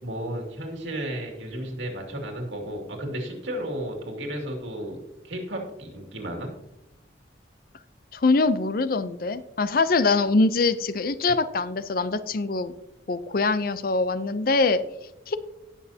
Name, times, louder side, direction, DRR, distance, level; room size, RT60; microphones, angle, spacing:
voice 1, 0.0-6.5, right 1 dB, 85° right, 1 dB, 2.4 m, -33 dB
voice 2, 8.1-12.7 13.1-14.8 15.3-15.4, left 3 dB, 50° left, 13 dB, 0.5 m, -23 dB
18.0 x 6.4 x 2.8 m, 0.90 s
head